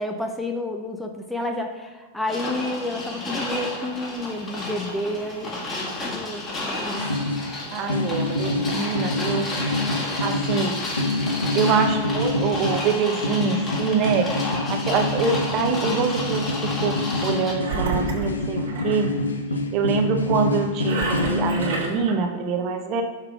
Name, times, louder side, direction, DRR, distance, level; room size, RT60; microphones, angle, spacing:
voice 1, 0.0-5.6 6.1-7.1, left 1 dB, ahead, 3 dB, 0.7 m, -30 dB
sound 1, 2.3-17.5, left 2 dB, 25° left, 1.8 m, -31 dB
sound 2, 7.0-7.6 7.9-21.9, left 2 dB, 85° left, 0.7 m, -26 dB
voice 2, 7.7-9.5 10.2-10.8 11.5-19.1 19.7-23.0, right 5 dB, 45° right, 5 dB, 0.9 m, -25 dB
Engine, 17.6-19.1 20.8-22.1, right 3 dB, 70° right, 1.7 m, -29 dB
6.6 x 3.6 x 4.8 m, 1.4 s
hypercardioid pair, 95°, 0 cm